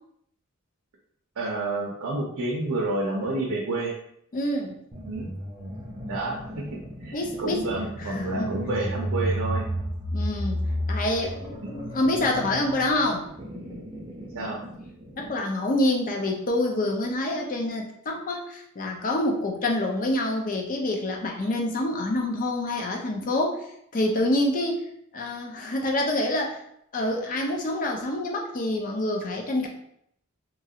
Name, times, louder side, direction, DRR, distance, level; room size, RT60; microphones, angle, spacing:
voice 1, 1.4-3.9 5.0-5.3 6.1-6.4 6.7-9.7 14.3-14.6, right 2 dB, 85° right, -2 dB, 0.6 m, -29 dB
voice 2, 4.3-4.8 7.1-7.7 8.0-8.5 10.1-13.3 15.2-23.6 23.9-24.8 25.1-26.6 26.9-29.7, left 1 dB, 40° left, 1 dB, 0.5 m, -27 dB
sound 1, 4.9-15.4, equal, 20° right, 0.6 m, -33 dB
3.0 x 2.4 x 2.7 m, 0.71 s
head